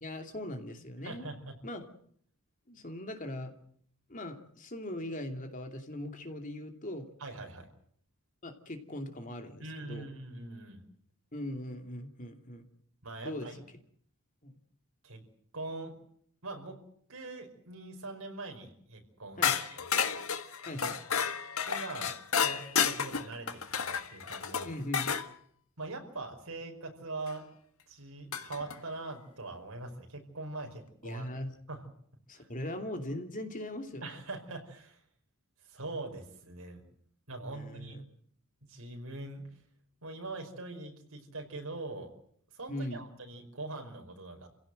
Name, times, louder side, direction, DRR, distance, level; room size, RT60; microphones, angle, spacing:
voice 1, 0.0-1.3 1.6-1.9 2.7-3.5 4.1-7.1 8.4-10.1 11.3-12.6 13.2-13.5 14.4-14.5 19.4-19.6 20.6-21.0 24.6-25.1 31.0-31.5 32.3-34.1 37.5-38.0 42.7-43.0, left 1 dB, 35° left, 5 dB, 2.8 m, -40 dB
voice 2, 1.0-1.5 7.2-7.7 9.6-10.8 13.0-13.6 15.0-15.2 15.5-15.9 16.4-16.8 17.1-19.8 21.7-22.1 22.4-24.7 25.8-27.4 27.9-31.3 31.7-31.9 32.4-32.5 34.0-35.0 35.6-36.8 37.3-38.0 38.7-39.4 40.0-42.1 42.5-44.5, right 2 dB, 75° right, 3 dB, 5.2 m, -42 dB
sound 1, 19.4-25.3 27.3-27.4 28.3-28.8, left 7 dB, 75° left, 1.7 m, -31 dB
28.0 x 17.0 x 7.8 m, 0.63 s
head